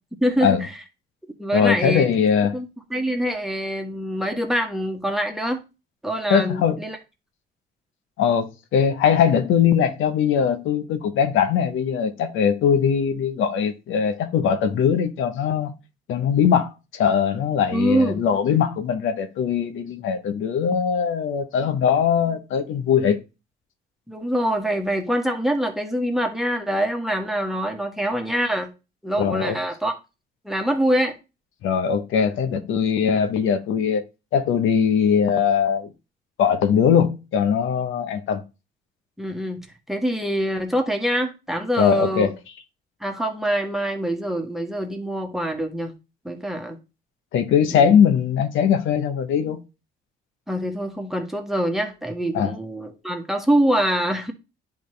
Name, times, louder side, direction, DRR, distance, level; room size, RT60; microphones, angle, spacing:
voice 1, 0.2-0.7 1.4-2.1 2.5-5.6 6.0-7.0 17.7-18.3 24.1-28.7 29.0-29.9 30.4-31.1 39.2-42.3 43.0-45.9 46.2-46.8 47.7-48.0 50.5-54.3, equal, ahead, 1.5 m, -24 dB
voice 2, 1.5-2.5 6.3-6.8 8.2-15.7 16.1-23.2 29.2-29.6 31.6-34.0 34.3-35.9 36.4-38.4 41.8-42.3 47.3-49.6 52.3-52.5, left 7 dB, 85° left, 0.9 m, -21 dB
10.0 x 3.6 x 3.2 m
cardioid pair, 90°, 20 cm